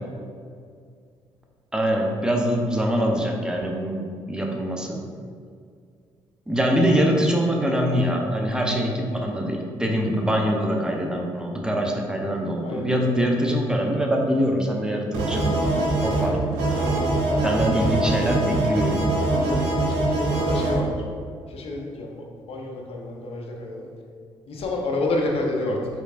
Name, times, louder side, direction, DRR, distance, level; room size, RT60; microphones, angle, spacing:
voice 1, 1.7-5.0 6.5-15.5 16.0-16.4 17.4-19.0, equal, 5° right, 1 dB, 0.6 m, -23 dB
voice 2, 12.6-13.1 16.9-18.2 19.2-21.0 21.5-23.9 24.5-25.8, left 2 dB, 55° left, 0 dB, 0.7 m, -30 dB
sound 1, 15.1-20.8, right 2 dB, 80° right, 0.7 m, -23 dB
4.2 x 3.2 x 2.4 m, 2.2 s
hypercardioid pair, 50°, 12 cm